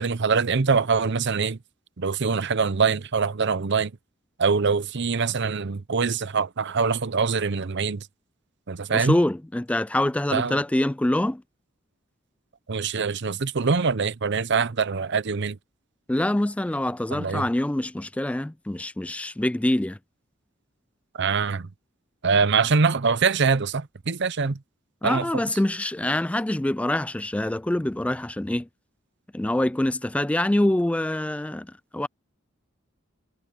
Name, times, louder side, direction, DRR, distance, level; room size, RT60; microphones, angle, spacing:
voice 1, 0.0-1.6 2.0-3.9 4.4-8.1 8.7-9.2 10.3-10.6 12.7-15.6 17.1-17.4 21.1-21.7 22.2-24.6 25.0-25.4, right 5 dB, 60° right, 0.7 m, -24 dB
voice 2, 8.9-11.4 16.1-20.0 25.0-28.7 29.3-32.1, left 1 dB, 5° left, 0.3 m, -25 dB
head